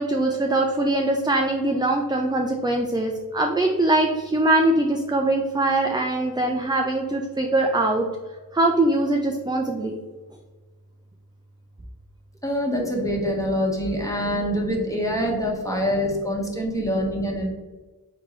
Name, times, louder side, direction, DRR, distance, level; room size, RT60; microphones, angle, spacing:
voice 1, 0.0-8.1 8.5-10.0, right 2 dB, 10° right, 2 dB, 0.4 m, -22 dB
voice 2, 12.4-17.5, equal, 10° left, -2 dB, 1.3 m, -25 dB
3.9 x 3.6 x 3.1 m, 1.3 s
cardioid pair, 40°, 40 cm